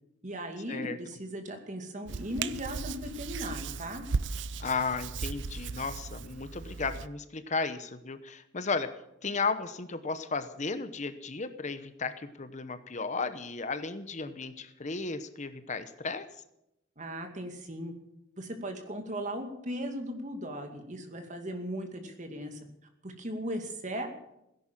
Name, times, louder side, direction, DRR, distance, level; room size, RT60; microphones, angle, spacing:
voice 1, 0.2-4.0 17.0-17.9 18.4-22.6 23.0-24.1, equal, 40° right, 5 dB, 2.4 m, -37 dB
Hands, 2.1-7.1, right 4 dB, 70° right, 0.6 m, -36 dB
voice 2, 4.6-8.9 9.2-16.3, left 4 dB, 40° left, 11 dB, 0.9 m, -34 dB
17.0 x 11.0 x 7.5 m, 0.84 s
head